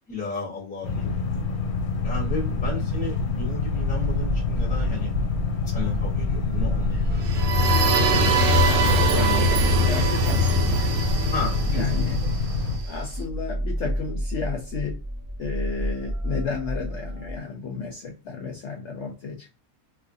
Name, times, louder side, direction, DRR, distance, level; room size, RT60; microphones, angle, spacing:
voice 1, 0.1-1.2 2.0-5.3 5.7-7.3 9.1-9.5 11.3-11.8, left 3 dB, 5° left, 0.8 m, -34 dB
sound 1, 0.8-12.8, left 4 dB, 90° left, 1.1 m, -26 dB
voice 2, 1.0-1.4 2.6-2.9 6.4-7.0 8.6-10.9 11.8-12.2 12.8-15.0 15.4-19.6, left 5 dB, 65° left, 0.8 m, -33 dB
sound 2, 3.6-17.4, equal, 40° right, 1.0 m, -31 dB
sound 3, 7.1-12.9, right 1 dB, 80° right, 1.0 m, -22 dB
2.6 x 2.4 x 2.6 m
omnidirectional pair, 1.5 m